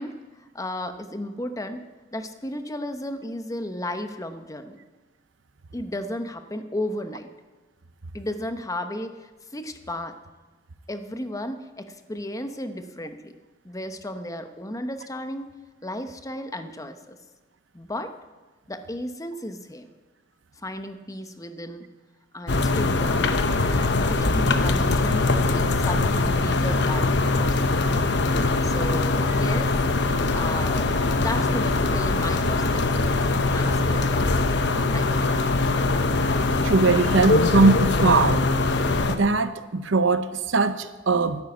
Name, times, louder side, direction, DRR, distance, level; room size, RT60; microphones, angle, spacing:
voice 1, 0.0-1.9 2.1-4.8 5.7-7.3 8.1-10.2 10.9-13.4 13.6-15.5 15.8-17.2 17.7-18.1 18.7-19.9 20.6-21.9 22.3-27.8 28.6-29.7 30.2-30.9 31.2-34.6 34.9-35.4, left 1 dB, 20° left, 8 dB, 0.9 m, -34 dB
sound 1, 22.5-39.2, left 3 dB, 65° left, 1.0 m, -22 dB
voice 2, 36.6-38.5 39.1-41.4, right 3 dB, 85° right, 12 dB, 0.8 m, -21 dB
11.5 x 10.0 x 8.2 m, 1.2 s
head